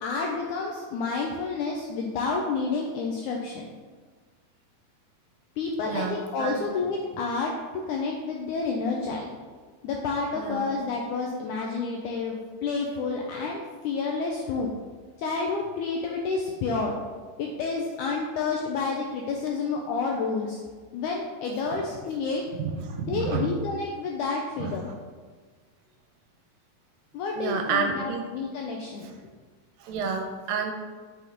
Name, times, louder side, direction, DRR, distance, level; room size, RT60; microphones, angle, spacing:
voice 1, 0.0-3.7 5.6-7.5 7.9-9.3 9.8-14.7 15.2-17.0 17.4-20.6 20.9-22.4 23.0-24.9 27.1-29.1, left 4 dB, 85° left, 0 dB, 1.8 m, -29 dB
voice 2, 5.8-6.6 10.3-10.7 21.7-21.8 22.6-23.5 24.6-24.8 27.3-28.3 29.8-30.7, right 5 dB, 85° right, 3 dB, 2.2 m, -30 dB
5.6 x 4.9 x 3.9 m, 1.5 s
omnidirectional pair, 4.1 m